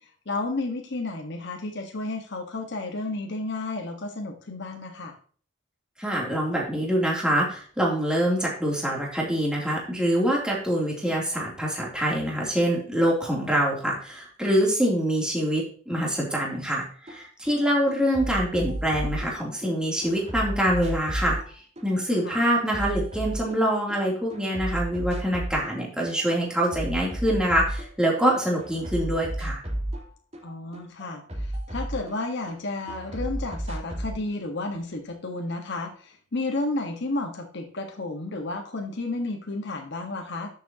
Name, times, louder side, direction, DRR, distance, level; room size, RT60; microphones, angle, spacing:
voice 1, 0.3-5.1 22.2-22.4 30.4-31.2 31.7-40.5, left 2 dB, 60° left, 2 dB, 1.5 m, -32 dB
voice 2, 6.0-21.4 21.8-29.6, equal, 5° right, -3 dB, 3.1 m, -25 dB
sound 1, 17.1-17.2 17.5-19.7 20.0-24.0 24.3-25.8 26.0-28.3 28.6-32.6 32.9-34.2, right 1 dB, 35° right, 3.9 m, -33 dB
11.5 x 7.4 x 2.9 m, 0.43 s
head